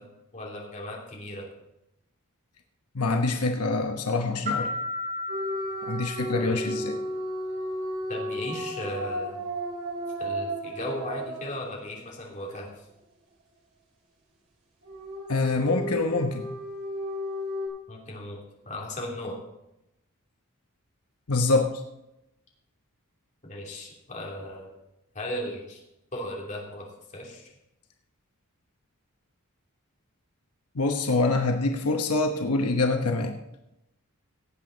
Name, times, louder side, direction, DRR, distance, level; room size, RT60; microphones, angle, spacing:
voice 1, 0.3-1.4 6.4-6.7 8.1-9.4 10.2-12.7 17.9-18.4 18.6-19.4 23.4-24.7 25.1-25.8 26.1-26.9 27.1-27.4, left 1 dB, 35° left, -2 dB, 2.8 m, -36 dB
voice 2, 2.9-4.7 5.9-7.0 15.3-16.4 21.3-21.8 30.7-33.4, left 3 dB, 85° left, 4 dB, 1.0 m, -25 dB
sound 1, 4.5-7.1, left 2 dB, 35° right, 2.8 m, -34 dB
sound 2, 5.3-12.2 14.8-17.7, equal, 85° right, 4.0 m, -34 dB
17.5 x 7.9 x 4.0 m, 0.88 s
head